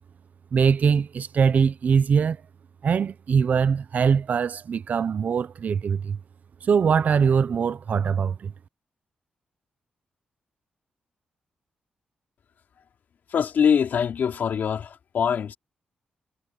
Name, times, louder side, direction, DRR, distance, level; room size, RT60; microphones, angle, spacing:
voice 1, 0.5-2.4 2.8-6.2 6.6-8.5, right 6 dB, 55° right, 0.7 m, -22 dB
voice 2, 13.3-15.6, left 7 dB, 65° left, 3.0 m, -23 dB
cardioid pair, 110°, 3 cm